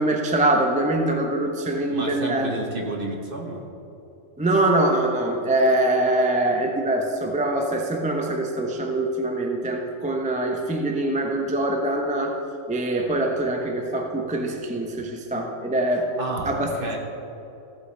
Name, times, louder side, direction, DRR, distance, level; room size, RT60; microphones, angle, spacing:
voice 1, 0.0-2.5 4.4-12.4 12.7-16.1 16.4-16.7, right 1 dB, 10° right, 2 dB, 0.6 m, -23 dB
voice 2, 1.9-3.6 16.2-17.0, right 2 dB, 45° right, 0 dB, 1.4 m, -31 dB
15.5 x 8.2 x 3.4 m, 2.9 s
omnidirectional pair, 1.3 m